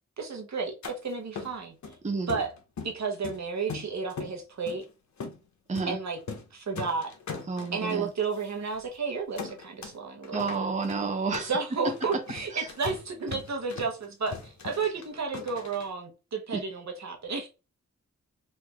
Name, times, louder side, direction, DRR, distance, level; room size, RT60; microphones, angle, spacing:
voice 1, 0.2-1.7 2.3-2.5 2.8-4.8 5.9-6.2 6.5-7.1 7.7-10.6 11.4-17.5, right 5 dB, 65° right, 1.0 m, -32 dB
sound 1, 0.8-1.0 1.4-2.0 2.3-3.0 3.2-4.3 4.7-4.8 5.2-5.4 5.7-5.9 6.2-6.5 6.8-8.0 8.4-8.5 8.8-9.0 9.4-10.0 10.2-15.9, left 5 dB, 70° left, 0.8 m, -40 dB
voice 2, 7.5-8.1 10.3-11.5 12.5-12.7 16.5-16.6, right 4 dB, 25° right, 0.6 m, -30 dB
3.2 x 2.5 x 3.4 m
wide cardioid pair, 85°, 30 cm